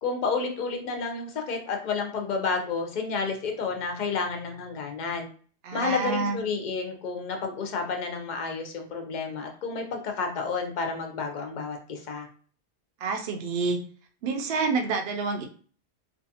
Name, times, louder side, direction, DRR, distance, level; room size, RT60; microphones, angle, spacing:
voice 1, 0.0-5.3 5.7-12.3, left 4 dB, 55° left, 3 dB, 0.6 m, -30 dB
voice 2, 5.6-6.4 13.0-13.8 14.2-15.4, right 4 dB, 70° right, 3 dB, 0.8 m, -28 dB
2.5 x 2.4 x 2.7 m, 0.43 s
omnidirectional pair, 1.1 m